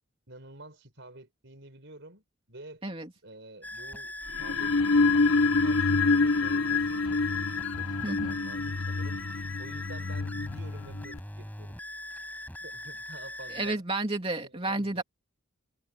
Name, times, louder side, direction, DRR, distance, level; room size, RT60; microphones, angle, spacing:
voice 1, 0.3-2.8 3.2-4.8 5.2-7.2 7.7-9.2 9.6-11.8 12.6-13.8 14.4-15.0, right 2 dB, 60° right, 5.6 m, -49 dB
sound 1, 3.6-13.8, left 1 dB, 10° left, 5.4 m, -41 dB
sound 2, 4.3-11.2, left 3 dB, 80° left, 1.3 m, -27 dB
voice 2, 8.0-8.4 13.5-15.0, right 2 dB, 25° right, 2.9 m, -31 dB
head